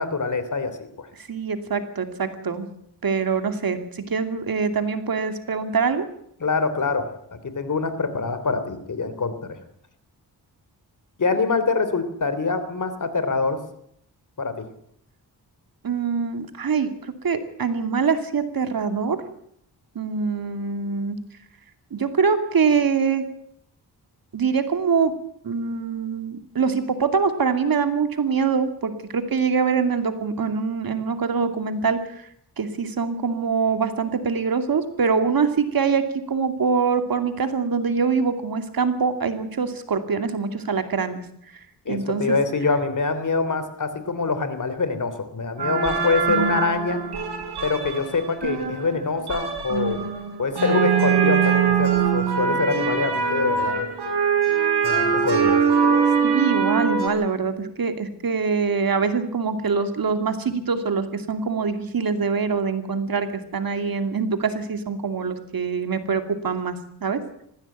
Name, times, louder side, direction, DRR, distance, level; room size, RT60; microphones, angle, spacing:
voice 1, 0.0-1.1 6.4-9.6 11.2-13.6 14.4-14.6 41.8-47.0 47.6-50.0 50.4-53.9 54.8-55.6, left 4 dB, 50° left, 11 dB, 3.3 m, -25 dB
voice 2, 1.2-2.7 3.0-6.0 15.8-19.2 19.9-21.2 21.9-23.2 24.3-25.1 25.4-32.3 32.6-41.2 41.9-42.4 56.2-67.2, right 5 dB, 60° right, 8 dB, 2.6 m, -24 dB
sound 1, 45.6-57.1, right 6 dB, 80° right, 6.3 m, -22 dB
20.0 x 15.5 x 9.2 m, 0.71 s
wide cardioid pair, 95°, 39 cm